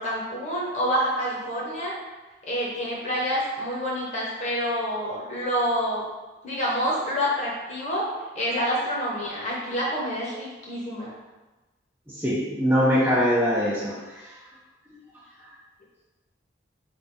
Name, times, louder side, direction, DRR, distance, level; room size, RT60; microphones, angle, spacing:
voice 1, 0.0-1.9 2.5-6.0 6.4-8.1 8.3-11.1, equal, 35° left, -5 dB, 1.0 m, -27 dB
voice 2, 12.1-14.4 15.4-15.5, equal, 10° right, -6 dB, 0.5 m, -23 dB
3.4 x 2.7 x 4.0 m, 1.2 s
head